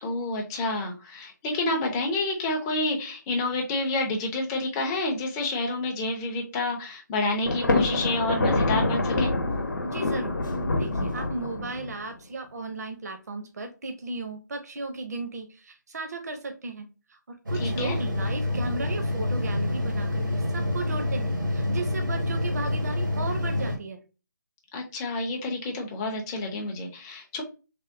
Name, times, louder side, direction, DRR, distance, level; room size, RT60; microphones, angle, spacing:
voice 1, 0.0-9.3 17.6-18.0 24.7-27.4, left 2 dB, 10° left, 2 dB, 0.4 m, -29 dB
Thunder, 7.5-12.0, left 2 dB, 75° left, 0.8 m, -26 dB
voice 2, 9.8-10.4 10.8-24.0, right 3 dB, 55° right, 6 dB, 0.6 m, -35 dB
sound 1, 17.5-23.8, left 1 dB, 85° right, 0.9 m, -27 dB
3.4 x 2.1 x 2.4 m, 0.32 s
figure-of-eight pair, 155°, 10 cm